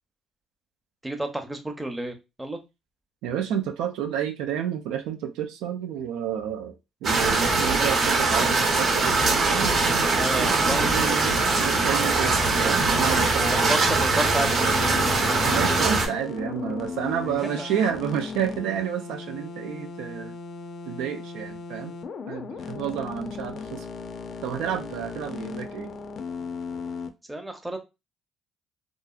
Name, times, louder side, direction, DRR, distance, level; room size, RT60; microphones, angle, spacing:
voice 1, 1.0-2.6 10.0-10.9 13.3-14.7 17.2-17.7 27.3-27.8, right 1 dB, 10° right, 4 dB, 0.7 m, -31 dB
voice 2, 3.2-13.8 15.4-20.3 20.9-22.0 22.3-23.9 24.4-25.9, right 9 dB, 80° right, 5 dB, 0.4 m, -30 dB
sound 1, 7.0-16.1, right 3 dB, 60° right, 0.9 m, -22 dB
sound 2, 7.6-14.0, left 2 dB, 90° left, 0.7 m, -38 dB
sound 3, 14.6-27.1, left 5 dB, 55° left, 0.4 m, -36 dB
2.7 x 2.4 x 2.4 m, 0.25 s
supercardioid pair, 65°, 0 cm